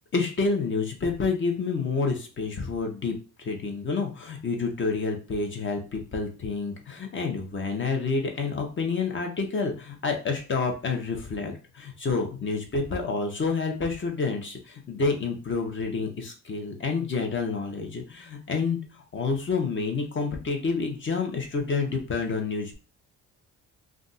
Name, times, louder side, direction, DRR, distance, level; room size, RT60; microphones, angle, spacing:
voice 1, 0.1-18.8 19.1-22.7, left 4 dB, 40° left, 3 dB, 0.9 m, -28 dB
2.5 x 2.4 x 3.9 m, 0.35 s
cardioid pair, 90°, 30 cm